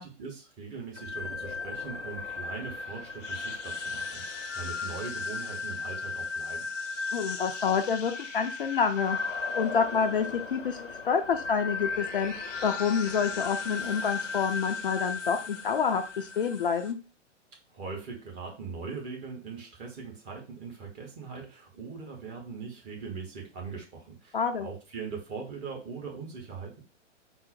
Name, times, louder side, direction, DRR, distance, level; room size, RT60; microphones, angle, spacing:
voice 1, 0.0-6.7 17.7-26.8, right 5 dB, 20° right, 0 dB, 0.9 m, -41 dB
sound 1, 0.9-16.9, left 4 dB, 80° left, 0.7 m, -36 dB
voice 2, 7.1-9.2 9.5-17.0 24.3-24.7, left 6 dB, 45° left, 6 dB, 0.4 m, -28 dB
3.8 x 2.0 x 4.2 m, 0.32 s
figure-of-eight pair, 115°, 37 cm